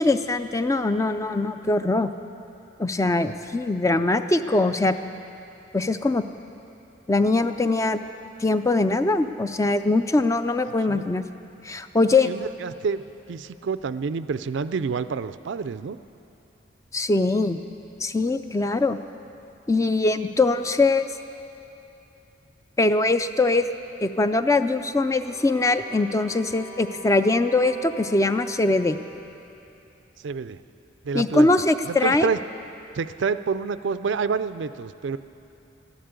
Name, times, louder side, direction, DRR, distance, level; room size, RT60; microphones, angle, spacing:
voice 1, 0.0-2.1 2.8-5.0 5.7-6.3 7.1-8.0 8.4-11.2 11.6-12.3 16.9-17.6 18.0-19.0 19.7-21.1 22.8-23.7 24.0-29.0 31.1-32.3, left 2 dB, 15° left, 10 dB, 0.3 m, -22 dB
voice 2, 12.1-13.0 13.3-16.0 30.2-30.6 31.0-31.5 31.9-32.4 32.9-35.2, right 5 dB, 70° right, 13 dB, 0.4 m, -28 dB
sound 1, 25.1-29.2, left 1 dB, 40° left, 3.0 m, -43 dB
14.0 x 11.5 x 8.1 m, 2.8 s
head